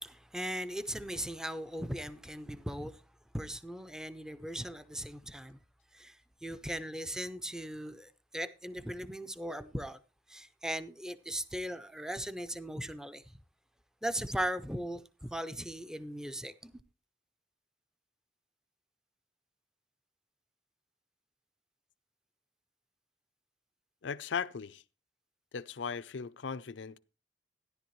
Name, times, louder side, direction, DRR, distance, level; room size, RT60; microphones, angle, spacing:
voice 1, 0.0-3.0 3.3-5.6 5.9-6.2 6.4-10.0 10.3-13.2 14.0-16.7, equal, 5° right, 0.5 m, -38 dB
voice 2, 24.0-24.8 25.5-27.0, left 6 dB, 70° left, 0.5 m, -37 dB
13.0 x 10.5 x 3.1 m
head